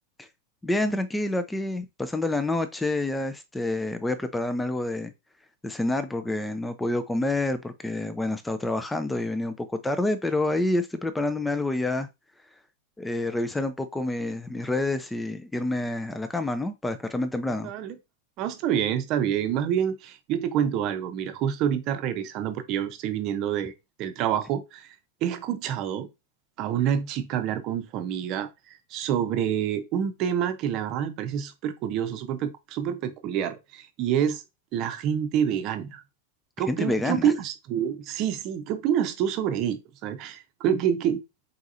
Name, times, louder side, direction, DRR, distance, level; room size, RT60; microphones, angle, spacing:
voice 1, 0.6-5.1 5.6-12.1 13.0-17.7 36.7-37.3, left 2 dB, 5° left, 0.6 m, -28 dB
voice 2, 17.6-18.0 18.4-23.7 24.0-25.0 25.2-26.1 26.6-34.4 34.7-36.0 36.6-41.2, right 9 dB, 40° right, 0.8 m, -27 dB
4.7 x 4.2 x 2.6 m
figure-of-eight pair, 90°, 0 cm